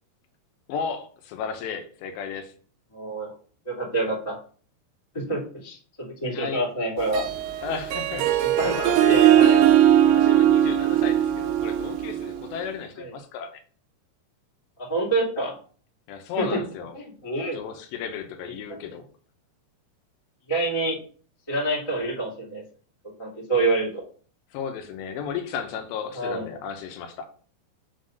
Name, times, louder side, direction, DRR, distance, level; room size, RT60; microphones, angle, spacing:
voice 1, 0.7-2.5 6.3-6.6 7.6-9.4 10.1-13.5 16.1-17.0 17.5-19.1 24.5-27.3, left 7 dB, 85° left, 6 dB, 3.2 m, -34 dB
voice 2, 2.9-3.3 3.6-4.4 5.1-7.2 8.4-9.6 13.0-13.1 14.8-15.5 16.4-16.6 16.9-17.6 18.4-18.5 20.5-21.0 21.5-22.6 23.2-24.0 26.1-26.4, right 2 dB, 10° left, -4 dB, 1.9 m, -27 dB
Harp, 7.0-12.5, right 11 dB, 85° right, 2.0 m, -20 dB
6.4 x 4.0 x 6.4 m, 0.42 s
omnidirectional pair, 5.0 m